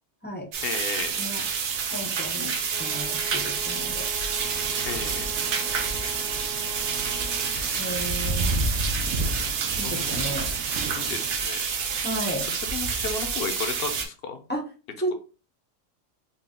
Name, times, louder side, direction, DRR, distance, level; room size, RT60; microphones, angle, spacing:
sound 1, 0.5-14.0, right 5 dB, 60° right, 0.7 m, -28 dB
voice 1, 0.6-1.2 4.9-5.3 7.5-8.0 9.8-10.2 10.9-11.6 12.0-14.4, left 5 dB, 60° left, 8 dB, 0.7 m, -34 dB
voice 2, 1.9-4.1 7.8-8.6 9.8-10.5 12.0-12.5 14.5-14.6 15.0-15.1, equal, 15° left, -1 dB, 0.4 m, -33 dB
sound 2, 2.7-7.5, right 3 dB, 35° right, 0.9 m, -41 dB
sound 3, 4.4-11.3, right 5 dB, 85° right, 1.1 m, -39 dB
3.9 x 2.1 x 3.5 m, 0.36 s
omnidirectional pair, 1.3 m